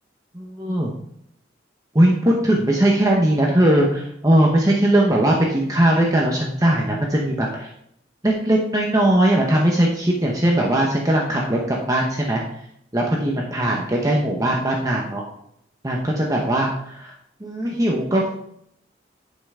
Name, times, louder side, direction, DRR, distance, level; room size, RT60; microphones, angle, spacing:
voice 1, 0.3-0.9 1.9-7.7 8.2-12.4 12.9-15.2 15.8-17.1 17.4-18.3, right 1 dB, 20° right, -2 dB, 1.0 m, -19 dB
10.5 x 5.6 x 3.7 m, 0.73 s
head